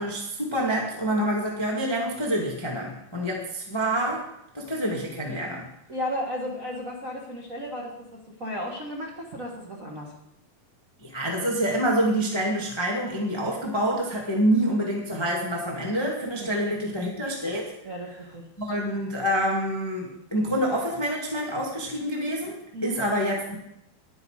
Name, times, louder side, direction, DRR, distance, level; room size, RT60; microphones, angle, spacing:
voice 1, 0.0-4.3 4.5-5.7 11.0-17.7 18.6-22.6 22.8-23.6, right 1 dB, 30° left, -2 dB, 0.4 m, -27 dB
voice 2, 5.9-10.2 16.4-16.7 17.8-18.5 22.7-23.0, equal, 80° right, -2 dB, 0.7 m, -34 dB
11.0 x 9.7 x 4.9 m, 0.80 s
omnidirectional pair, 4.3 m